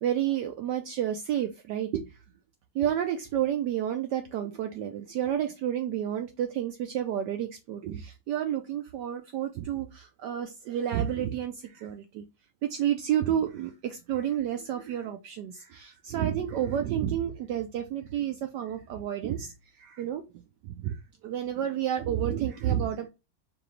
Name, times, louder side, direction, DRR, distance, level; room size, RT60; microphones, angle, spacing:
voice 1, 0.0-2.1 2.7-12.2 12.6-19.5 19.8-20.2 20.8-23.1, right 10 dB, 75° right, 6 dB, 1.0 m, -30 dB
4.8 x 2.6 x 3.1 m, 0.26 s
omnidirectional pair, 2.2 m